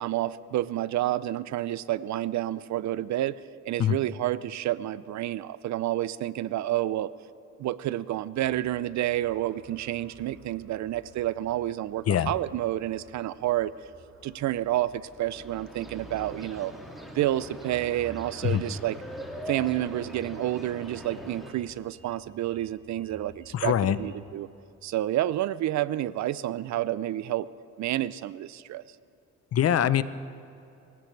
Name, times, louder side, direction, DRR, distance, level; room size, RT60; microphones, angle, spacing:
voice 1, 0.0-3.4 3.7-7.1 7.6-13.7 14.2-16.7 17.1-19.0 19.5-24.5 24.8-27.5 27.8-28.8, right 14 dB, 65° right, 18 dB, 0.5 m, -29 dB
sound 1, 8.3-24.3, right 3 dB, 45° right, 1.9 m, -53 dB
sound 2, 15.1-21.5, equal, ahead, 2.6 m, -42 dB
voice 2, 23.5-24.0 29.5-30.0, left 10 dB, 55° left, 15 dB, 0.7 m, -23 dB
25.5 x 16.5 x 3.3 m, 2.8 s
cardioid pair, 90°, 30 cm